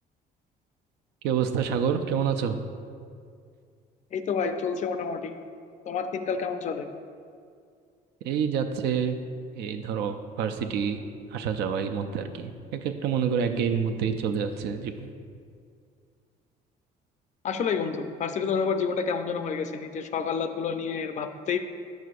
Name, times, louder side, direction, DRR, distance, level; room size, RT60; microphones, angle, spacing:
voice 1, 1.2-2.6 8.2-9.2 9.5-11.0 11.3-15.1, right 7 dB, 80° right, 7 dB, 0.5 m, -28 dB
voice 2, 4.1-5.3 5.8-6.9 17.4-21.6, left 6 dB, 45° left, 8 dB, 0.4 m, -29 dB
8.0 x 6.2 x 2.5 m, 2.2 s
cardioid pair, 110°, 17 cm